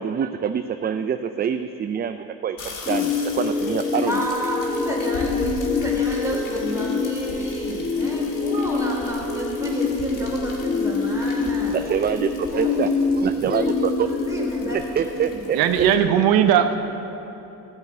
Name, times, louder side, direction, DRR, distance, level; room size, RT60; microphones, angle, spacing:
voice 1, 0.0-2.6 2.9-4.2 11.7-14.1 14.7-15.8, right 8 dB, 30° right, 9 dB, 0.4 m, -26 dB
sound 1, 2.6-15.9, left 2 dB, 65° left, 2.2 m, -39 dB
sound 2, 2.9-14.7, left 4 dB, 20° left, 1.4 m, -25 dB
voice 2, 4.1-11.8 12.5-12.7 14.0-15.6 16.0-16.2, equal, 10° right, -3 dB, 3.3 m, -30 dB
voice 3, 15.5-16.8, right 9 dB, 85° right, 8 dB, 0.7 m, -18 dB
15.5 x 5.3 x 8.2 m, 2.9 s
cardioid pair, 100°, 35 cm